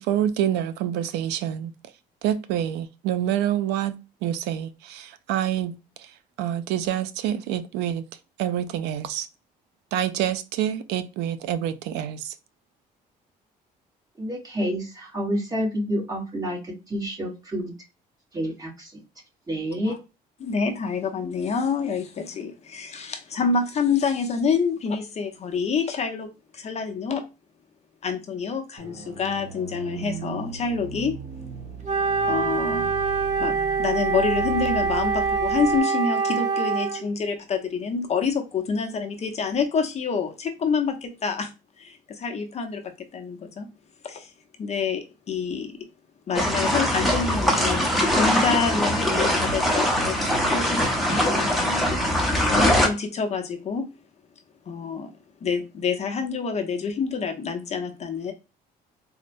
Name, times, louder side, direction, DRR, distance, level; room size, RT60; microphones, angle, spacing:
voice 1, 0.0-1.7 2.2-6.1 6.4-8.0 8.4-9.3 9.9-12.3, right 10 dB, 90° right, 0.4 m, -27 dB
voice 2, 14.2-17.7 18.3-19.0 19.5-19.9, equal, 20° right, 1.2 m, -29 dB
voice 3, 20.4-26.3 26.5-27.2 28.0-31.2 32.3-32.9 33.4-41.5 41.8-43.7 44.0-44.3 44.6-45.7 46.3-52.1 52.5-53.9 54.7-55.1 55.4-58.3, left 5 dB, 40° left, 0.7 m, -27 dB
sound 1, 28.8-35.8, right 3 dB, 70° right, 1.2 m, -37 dB
Wind instrument woodwind instrument, 31.8-37.0, right 5 dB, 45° right, 0.7 m, -24 dB
sound 2, 46.3-52.9, equal, ahead, 0.8 m, -22 dB
4.0 x 2.1 x 2.6 m
cardioid pair, 110°, 17 cm